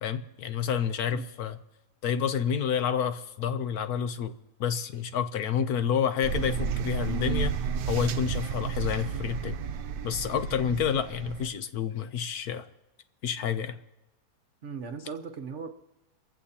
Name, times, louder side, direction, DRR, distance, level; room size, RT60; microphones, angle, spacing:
voice 1, 0.0-1.6 2.0-7.5 7.9-9.6 10.0-12.7 13.2-13.8, left 8 dB, 70° left, 10 dB, 1.2 m, -29 dB
sound 1, 6.2-11.5, right 7 dB, 90° right, 1.3 m, -32 dB
voice 2, 14.6-15.7, right 5 dB, 50° right, 6 dB, 1.2 m, -38 dB
29.5 x 15.0 x 2.9 m, 1.0 s
omnidirectional pair, 1.8 m